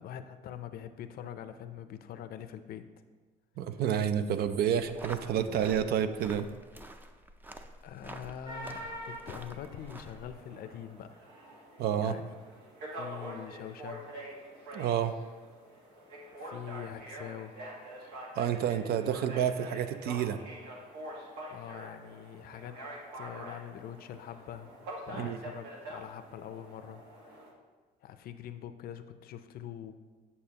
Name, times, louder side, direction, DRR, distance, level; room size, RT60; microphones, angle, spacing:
voice 1, 0.0-2.9 7.8-11.2 12.0-12.3 12.9-14.1 16.4-17.6 21.5-22.8 23.1-24.7 25.1-27.0 27.3-27.4 28.0-29.9, left 9 dB, 65° left, 10 dB, 0.5 m, -44 dB
voice 2, 3.6-6.5 11.8-12.2 14.7-15.1 18.4-20.4 25.1-25.4, right 9 dB, 65° right, 10 dB, 0.5 m, -29 dB
sound 1, 4.8-10.3, right 1 dB, 10° right, 0.4 m, -48 dB
Call to Post, 8.5-27.5, right 1 dB, 85° right, 1.5 m, -46 dB
8.5 x 6.9 x 2.9 m, 1.4 s
cardioid pair, 110°, 17 cm